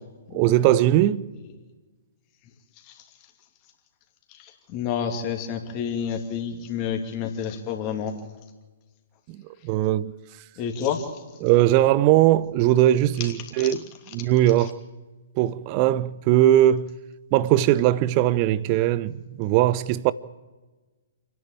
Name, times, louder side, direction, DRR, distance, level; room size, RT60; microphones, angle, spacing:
voice 1, 0.3-1.2 9.3-10.1 11.4-13.8 14.1-14.8 15.4-16.9 17.3-20.1, right 13 dB, 35° right, 0.7 m, -20 dB
voice 2, 4.3-8.2 10.6-11.2 13.2-13.8 14.1-14.3 14.6-14.7, left 7 dB, 30° left, 2.8 m, -30 dB
28.5 x 11.0 x 8.7 m
figure-of-eight pair, 120°, 0 cm